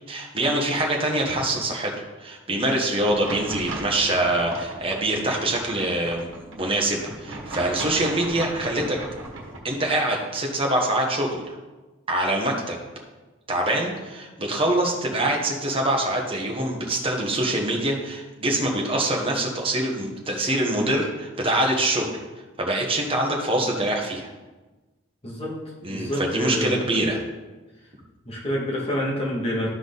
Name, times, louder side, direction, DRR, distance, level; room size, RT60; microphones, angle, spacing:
voice 1, 0.1-1.9 2.2-9.0 9.6-11.5 12.1-12.8 13.5-22.1 22.6-24.3 25.8-27.2, right 1 dB, 30° right, 0 dB, 1.3 m, -24 dB
sound 1, 3.0-9.6, right 2 dB, 85° right, 1.4 m, -36 dB
voice 2, 25.2-25.6 25.9-26.8 28.3-29.7, equal, 30° left, -4 dB, 2.0 m, -27 dB
12.5 x 4.7 x 4.0 m, 1.2 s
head